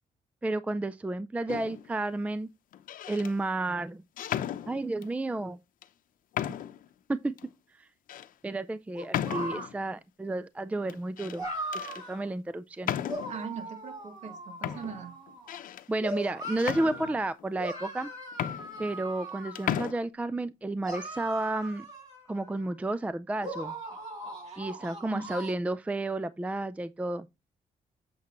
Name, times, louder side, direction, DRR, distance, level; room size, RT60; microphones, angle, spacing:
voice 1, 0.4-2.5 3.1-4.0 4.7-5.6 6.5-6.6 7.1-7.4 7.8-7.9 8.4-11.5 11.7-12.9 15.9-18.1 18.8-21.9 22.3-23.7 24.6-27.3, right 2 dB, 10° right, 0.4 m, -32 dB
sound 1, 1.5-1.9 2.7-3.3 4.2-5.1 5.8-5.9 6.3-6.9 7.4-7.5 8.1-8.3 9.1-9.8 10.9-11.4 11.7-12.0 12.8-13.5 14.2-14.3 14.6-15.9 16.6-17.4 18.0-18.1 18.3-19.3 19.6-19.9, left 10 dB, 80° left, 0.7 m, -35 dB
Robin - Monkey, 8.9-9.7 11.3-12.2 13.0-15.6 16.0-17.1 17.6-20.0 20.8-22.7 23.4-25.5, right 1 dB, 30° right, 6.1 m, -39 dB
voice 2, 13.3-15.1 24.4-24.7 25.1-25.2, right 5 dB, 55° right, 2.6 m, -40 dB
8.2 x 7.5 x 3.0 m
cardioid pair, 125°, 14 cm